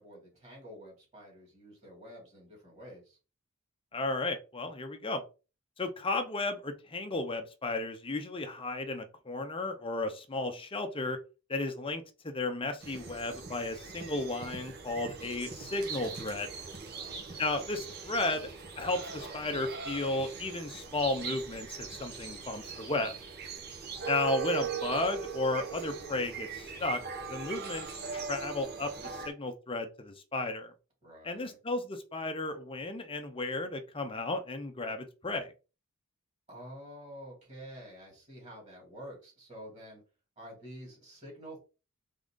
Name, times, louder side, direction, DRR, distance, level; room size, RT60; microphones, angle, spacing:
voice 1, 0.0-3.2 16.9-17.5 27.5-27.9 31.0-31.6 36.5-40.0 40.4-41.6, equal, 30° right, 2.6 m, -49 dB
voice 2, 3.9-5.2 5.8-11.2 11.5-16.5 17.4-18.5 18.8-23.1 24.1-27.0 27.3-30.7 31.2-35.5, left 2 dB, 25° left, 0.7 m, -34 dB
sound 1, 12.8-29.3, right 6 dB, 45° right, 1.1 m, -40 dB
3.8 x 3.6 x 3.8 m
head